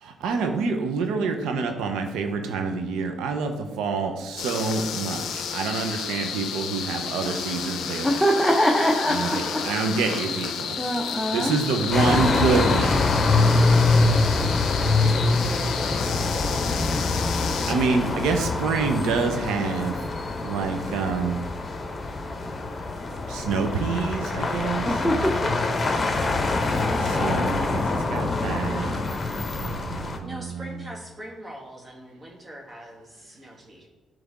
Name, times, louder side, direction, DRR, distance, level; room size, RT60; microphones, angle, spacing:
voice 1, 0.0-8.2 9.1-10.8 11.1-13.0 17.7-20.0 20.4-21.4 23.3-25.2 27.0-29.0 29.6-30.6, right 4 dB, 90° right, 5 dB, 0.7 m, -27 dB
sound 1, 4.4-17.7, left 7 dB, 80° left, 0.5 m, -32 dB
voice 2, 8.0-9.8 10.8-11.6 24.8-25.5, equal, 5° left, 0 dB, 0.8 m, -23 dB
sound 2, 11.9-30.2, left 3 dB, 40° left, 0.9 m, -24 dB
voice 3, 30.2-33.9, equal, 25° right, -2 dB, 1.8 m, -42 dB
10.0 x 3.4 x 3.6 m, 1.2 s
cardioid pair, 70°, 0 cm